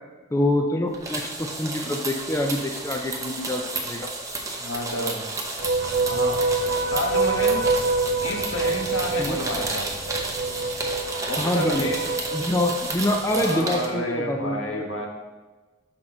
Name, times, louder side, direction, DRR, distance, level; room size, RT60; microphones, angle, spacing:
voice 1, 0.3-4.1 9.2-9.4 11.4-11.9 12.3-14.8, left 1 dB, 15° left, 3 dB, 0.4 m, -26 dB
sound 1, 0.9-13.9, right 2 dB, 15° right, 0.8 m, -32 dB
voice 2, 4.6-5.3 6.1-6.4 6.9-7.7 8.2-9.9 11.3-12.1 13.4-15.1, left 1 dB, 75° left, 1 dB, 1.2 m, -30 dB
sound 2, 5.6-13.6, right 3 dB, 55° right, 0.8 m, -26 dB
6.1 x 5.9 x 3.8 m, 1.2 s
head